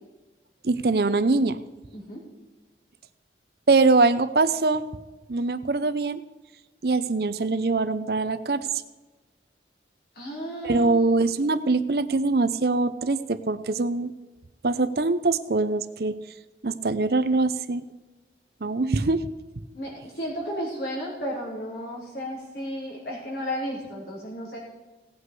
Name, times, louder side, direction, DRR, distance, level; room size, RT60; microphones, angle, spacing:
voice 1, 0.6-1.6 3.7-4.8 5.3-6.2 6.8-8.7 10.6-14.1 14.6-16.1 16.6-17.8 18.6-19.3, right 3 dB, 55° right, 12 dB, 0.7 m, -23 dB
voice 2, 10.1-11.1 19.7-24.6, equal, 60° left, -4 dB, 4.8 m, -33 dB
17.5 x 8.3 x 4.8 m, 1.2 s
head